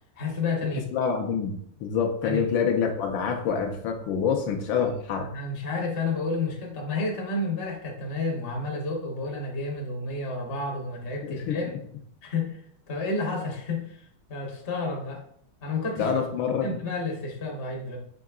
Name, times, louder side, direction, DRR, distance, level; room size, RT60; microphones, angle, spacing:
voice 1, 0.2-0.8 2.2-2.4 4.7-4.9 5.2-11.7 12.2-15.2 15.6-16.1 16.6-18.0, left 3 dB, 45° left, 0 dB, 0.7 m, -31 dB
voice 2, 0.9-5.3 11.2-11.6 16.0-16.7, left 6 dB, 85° left, 3 dB, 1.4 m, -26 dB
5.5 x 3.6 x 2.3 m, 0.64 s
omnidirectional pair, 2.1 m